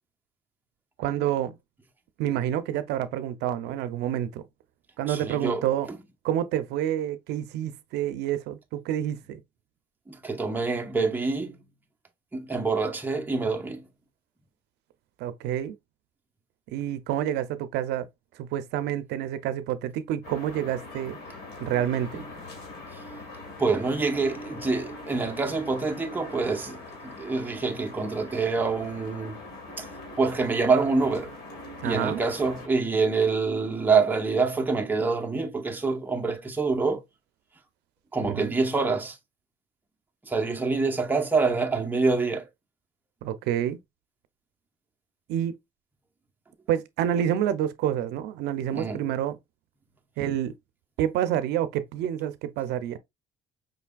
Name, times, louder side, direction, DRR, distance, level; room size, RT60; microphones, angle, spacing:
voice 1, 1.0-1.6 2.2-4.4 5.0-5.9 6.2-9.4 15.2-15.8 16.7-18.1 18.4-21.2 21.6-22.3 31.8-32.2 38.3-38.5 43.2-43.8 45.3-45.6 46.7-49.4 50.2-50.5 51.0-53.0, right 11 dB, 80° right, 0.5 m, -28 dB
voice 2, 5.1-5.6 10.1-11.6 12.3-13.8 23.6-29.4 29.8-29.9 30.1-31.3 31.8-37.0 38.1-39.2 40.2-42.5 48.7-49.0, right 4 dB, 10° right, 0.8 m, -26 dB
sound 1, 20.2-32.7, left 2 dB, 75° left, 1.8 m, -42 dB
5.1 x 3.3 x 2.3 m
cardioid pair, 110°, 17 cm